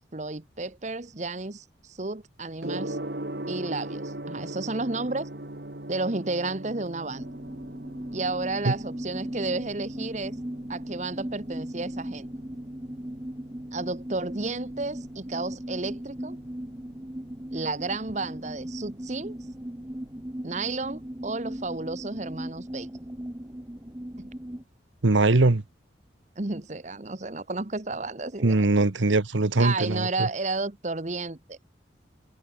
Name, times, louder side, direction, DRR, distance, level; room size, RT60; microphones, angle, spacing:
voice 1, 0.1-3.0 3.5-5.3 5.9-7.2 8.1-10.3 10.7-12.3 13.7-16.4 17.5-19.4 20.4-22.9 24.2-24.3 26.4-28.7 29.6-31.6, right 3 dB, 40° right, 1.1 m, -32 dB
Gong, 2.6-21.6, right 1 dB, 60° right, 2.2 m, -42 dB
sound 1, 7.1-24.6, equal, 15° right, 1.0 m, -38 dB
voice 2, 25.0-25.6 28.4-30.3, right 2 dB, 85° right, 1.1 m, -21 dB
head